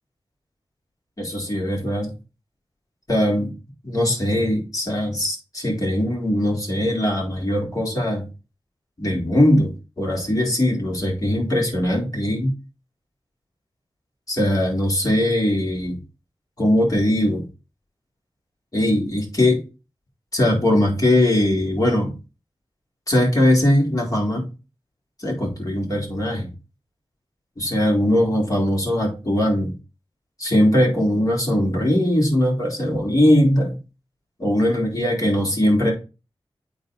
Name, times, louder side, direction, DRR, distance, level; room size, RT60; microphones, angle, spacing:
voice 1, 1.2-2.1 3.1-3.5 3.8-8.3 9.0-9.7 10.0-12.5 14.3-16.0 16.6-17.4 18.7-19.6 20.3-22.1 23.1-24.5 25.2-26.5 27.6-29.7 30.4-33.8 34.4-35.9, left 1 dB, 40° left, -2 dB, 4.1 m, -20 dB
9.0 x 3.9 x 4.0 m, 0.31 s
cardioid pair, 55°, 9 cm